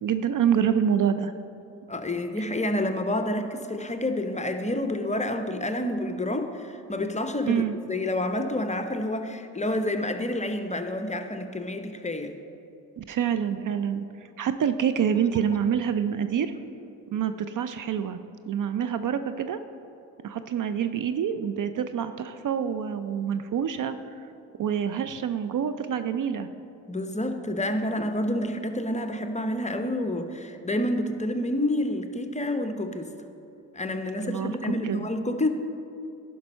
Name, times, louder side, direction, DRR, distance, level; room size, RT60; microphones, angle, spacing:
voice 1, 0.0-1.3 7.5-7.8 13.0-14.0 14.4-16.5 17.1-18.2 18.5-19.6 20.2-24.3 24.6-26.5 34.2-34.5 34.8-35.1, right 8 dB, 50° right, 11 dB, 0.5 m, -26 dB
voice 2, 1.9-12.4 26.9-33.1 33.7-35.5, left 1 dB, 15° left, 7 dB, 0.7 m, -29 dB
11.0 x 5.3 x 5.4 m, 2.7 s
supercardioid pair, 60°, 43 cm